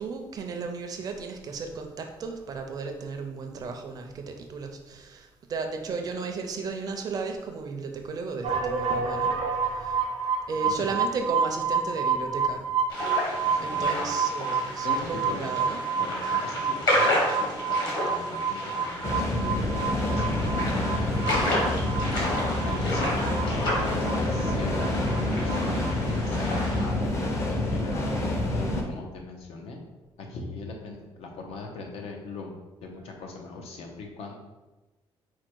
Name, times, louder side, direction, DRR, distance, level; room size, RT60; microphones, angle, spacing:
voice 1, 0.0-10.0 10.5-12.6 13.6-15.8 16.5-16.7 20.3-20.6 33.0-33.1, right 4 dB, 40° right, 5 dB, 0.4 m, -35 dB
sound 1, 8.4-25.2 25.5-25.9, right 6 dB, 85° right, 0.6 m, -28 dB
sound 2, 12.9-26.9, left 1 dB, 45° left, 1.1 m, -31 dB
voice 2, 13.4-14.0 14.8-15.5 16.0-19.6 20.1-25.1 25.4-29.8 30.2-32.6 32.8-34.4, left 3 dB, 80° left, 2 dB, 0.8 m, -40 dB
sound 3, 19.0-28.8, left 1 dB, 25° left, 0.6 m, -27 dB
4.5 x 2.3 x 4.5 m, 1.1 s
cardioid pair, 170°, 10 cm